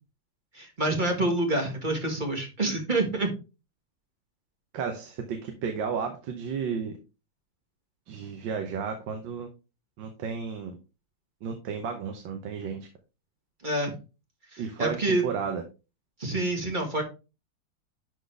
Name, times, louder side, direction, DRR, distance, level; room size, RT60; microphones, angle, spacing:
voice 1, 0.5-3.3 13.6-13.9 14.5-15.3 16.2-17.0, right 2 dB, 25° right, 2 dB, 1.8 m, -27 dB
voice 2, 4.7-6.9 8.1-9.5 10.0-10.8 11.4-12.9 14.6-15.6, right 6 dB, 80° right, 5 dB, 1.6 m, -33 dB
11.5 x 4.0 x 3.4 m, 0.30 s
omnidirectional pair, 2.1 m